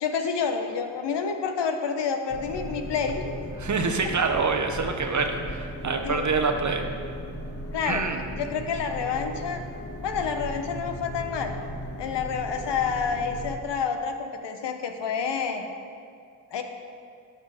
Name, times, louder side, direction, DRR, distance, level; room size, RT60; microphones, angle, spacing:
voice 1, 0.0-3.2 6.0-6.3 7.7-8.0 8.4-9.6 10.0-11.6 12.0-15.6 16.5-16.6, left 6 dB, 60° left, 6 dB, 0.9 m, -28 dB
sound 1, 2.3-13.6, equal, 30° left, 1.6 m, -37 dB
voice 2, 3.6-6.8 7.9-8.2, right 4 dB, 40° right, 4 dB, 1.0 m, -26 dB
12.0 x 5.9 x 3.5 m, 2.3 s
hypercardioid pair, 45°, 47 cm